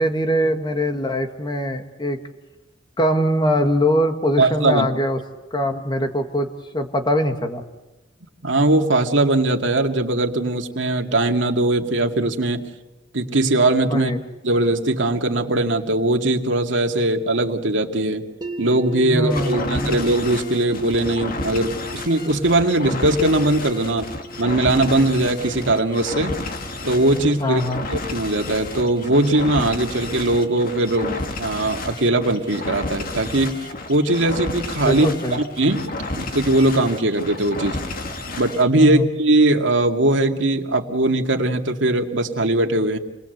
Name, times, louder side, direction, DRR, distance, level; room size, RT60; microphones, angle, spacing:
voice 1, 0.0-2.2 3.0-5.2 5.5-6.5 6.7-7.6 13.9-14.2 19.0-20.0 27.2-27.8 34.9-35.4 38.8-39.1, equal, 25° left, 6 dB, 1.8 m, -22 dB
voice 2, 4.4-4.9 8.4-12.6 13.1-14.1 14.4-18.2 18.6-24.1 24.4-26.3 26.8-27.6 27.9-35.8 36.1-37.8 38.4-43.0, right 2 dB, 85° right, 3 dB, 2.3 m, -20 dB
sound 1, 18.4-30.3, left 1 dB, 20° right, 1.5 m, -37 dB
sound 2, 19.3-38.7, left 2 dB, 50° left, 2.1 m, -31 dB
29.0 x 20.5 x 8.1 m, 1.0 s
head